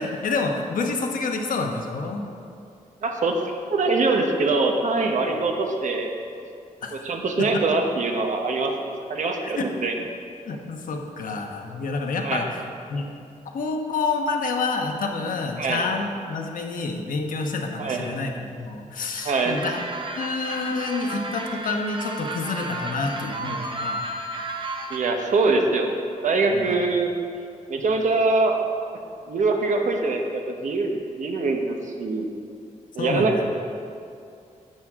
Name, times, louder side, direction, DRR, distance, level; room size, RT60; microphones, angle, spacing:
voice 1, 0.0-2.2 6.8-7.0 7.4-7.6 9.4-9.7 10.4-12.6 12.9-13.2 13.5-19.8 20.1-24.1 26.5-26.8 33.0-33.4, left 3 dB, 85° left, 2 dB, 1.1 m, -28 dB
voice 2, 3.0-6.1 7.0-8.7 9.1-10.0 12.2-12.5 15.6-15.8 17.8-18.1 19.2-19.6 24.9-25.9 26.2-27.2 27.7-28.6 29.3-32.3 32.9-33.4, right 3 dB, 65° right, 3 dB, 1.1 m, -23 dB
sound 1, 19.2-25.0, right 2 dB, 40° right, 0.8 m, -33 dB
11.0 x 8.7 x 3.7 m, 2.5 s
wide cardioid pair, 145°, 14 cm